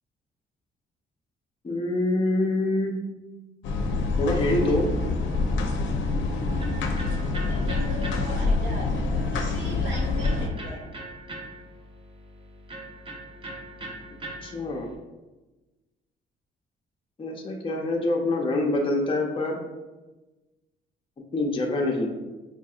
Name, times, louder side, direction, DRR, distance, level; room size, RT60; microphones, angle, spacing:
voice 1, 1.6-3.0 4.2-4.9 14.4-14.9 17.2-19.6 21.3-22.1, left 2 dB, 25° left, 0 dB, 0.6 m, -25 dB
sound 1, 3.6-10.5, left 3 dB, 75° left, 0.5 m, -26 dB
Electric guitar, 5.9-14.9, right 1 dB, 25° right, 0.7 m, -42 dB
voice 2, 7.4-10.8, left 1 dB, 65° right, -3 dB, 1.1 m, -38 dB
4.8 x 2.6 x 2.4 m, 1.1 s
cardioid pair, 90°, 20 cm